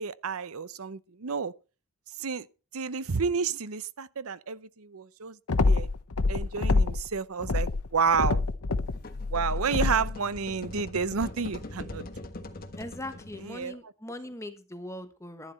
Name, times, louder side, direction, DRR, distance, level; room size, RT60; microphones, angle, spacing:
voice 1, 0.0-1.5 2.2-2.5 2.7-5.4 5.6-5.9 6.3-8.4 9.3-12.1 13.4-13.8, right 5 dB, 70° right, 0.7 m, -30 dB
sound 1, 5.5-7.1 7.4-10.2, left 3 dB, 80° left, 0.9 m, -26 dB
sound 2, 8.9-13.7, left 1 dB, 40° left, 1.4 m, -42 dB
voice 2, 12.8-15.5, left 1 dB, 15° left, 1.2 m, -40 dB
11.5 x 11.0 x 4.3 m
head